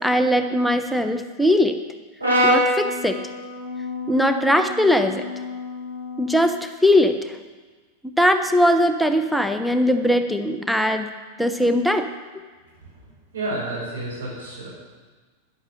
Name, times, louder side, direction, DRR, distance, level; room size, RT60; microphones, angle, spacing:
voice 1, 0.0-1.8 2.4-3.2 4.1-5.3 6.2-7.4 8.2-11.1 11.4-12.1, equal, ahead, 8 dB, 0.8 m, -20 dB
Brass instrument, 2.2-6.5, left 1 dB, 90° right, 3.8 m, -26 dB
voice 2, 12.8-13.1 13.3-14.7, right 2 dB, 65° right, -6 dB, 5.5 m, -31 dB
13.0 x 10.5 x 6.2 m, 1.4 s
figure-of-eight pair, 90°, 0 cm